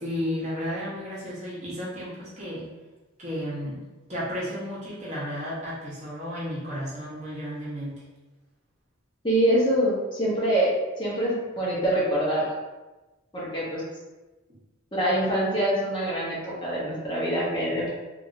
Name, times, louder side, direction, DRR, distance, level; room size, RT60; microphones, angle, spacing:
voice 1, 0.0-2.7 3.2-3.8 4.1-8.0, equal, 35° right, -8 dB, 0.9 m, -33 dB
voice 2, 9.2-10.7 11.0-12.5 13.3-13.8 14.9-17.9, right 1 dB, 25° left, -7 dB, 0.8 m, -25 dB
3.0 x 2.6 x 2.6 m, 1.1 s
head